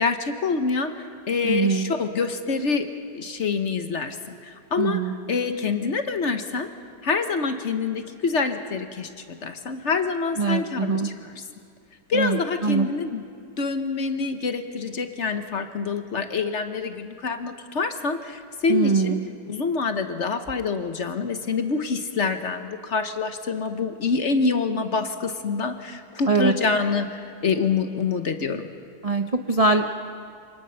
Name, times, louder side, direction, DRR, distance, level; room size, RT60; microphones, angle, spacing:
voice 1, 0.0-6.7 7.0-11.4 12.1-13.2 13.6-19.2 19.5-28.7, left 4 dB, 50° left, 7 dB, 1.1 m, -26 dB
voice 2, 1.4-1.9 4.8-5.1 10.4-11.1 12.1-12.9 18.7-19.3 26.3-26.5 29.0-29.9, right 4 dB, 40° right, 5 dB, 0.5 m, -22 dB
27.5 x 20.0 x 5.7 m, 2.3 s
omnidirectional pair, 1.8 m